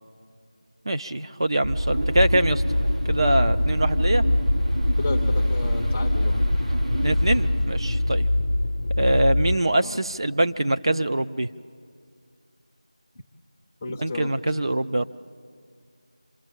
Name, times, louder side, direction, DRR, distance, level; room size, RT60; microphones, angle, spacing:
voice 1, 0.9-2.6 3.1-4.2 7.0-8.3 9.0-11.5 13.9-15.1, right 1 dB, 50° right, 8 dB, 0.5 m, -23 dB
sound 1, 1.6-9.0, equal, 85° right, 1.5 m, -27 dB
sound 2, 2.2-9.5, left 1 dB, 55° left, 0.7 m, -24 dB
voice 2, 5.0-6.4 9.8-10.0 13.8-14.3, left 3 dB, 10° left, 0 dB, 0.5 m, -33 dB
27.0 x 21.0 x 7.2 m, 2.1 s
figure-of-eight pair, 175°, 3 cm